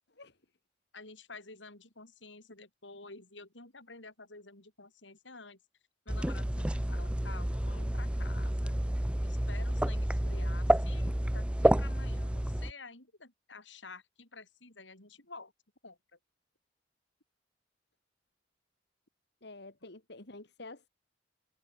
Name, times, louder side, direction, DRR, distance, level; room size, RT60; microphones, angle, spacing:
voice 1, 0.9-5.6 6.1-8.8 9.2-15.5 15.8-16.0, left 3 dB, 85° left, 7.3 m, -50 dB
sound 1, 6.1-12.7, right 1 dB, 5° right, 0.5 m, -30 dB
voice 2, 19.4-20.9, left 2 dB, 65° left, 2.6 m, -48 dB
head